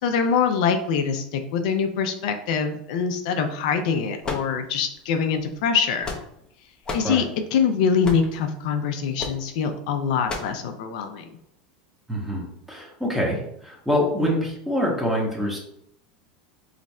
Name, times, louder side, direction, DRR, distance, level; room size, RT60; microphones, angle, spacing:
voice 1, 0.0-6.1 6.9-11.3, left 6 dB, 70° left, 6 dB, 0.5 m, -24 dB
sound 1, 4.2-5.0 5.7-6.5 6.9-7.2 8.0-8.4 9.2-9.4 10.3-10.6, left 3 dB, 20° left, 0.7 m, -32 dB
voice 2, 12.1-15.6, equal, 5° right, -2 dB, 1.2 m, -25 dB
3.2 x 2.5 x 4.2 m, 0.75 s
supercardioid pair, 125°, 4 cm